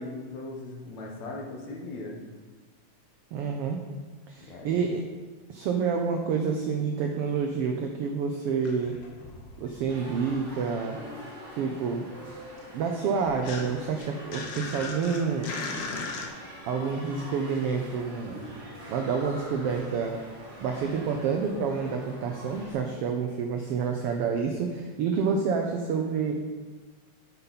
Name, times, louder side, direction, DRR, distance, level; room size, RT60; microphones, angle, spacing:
voice 1, 0.0-2.2 4.4-4.8, left 2 dB, 70° left, -1 dB, 2.4 m, -39 dB
voice 2, 3.3-3.8 4.3-5.0 5.5-9.0 9.6-11.0 11.6-12.1 12.7-15.5 16.7-18.5 18.9-20.2 20.6-26.4, right 5 dB, 85° right, 3 dB, 1.3 m, -28 dB
sound 1, 8.5-10.4 10.6-16.3, left 3 dB, 85° left, 1.0 m, -39 dB
sound 2, 9.9-22.7, right 1 dB, 50° right, 2.5 m, -45 dB
9.6 x 7.1 x 4.1 m, 1.4 s
omnidirectional pair, 3.5 m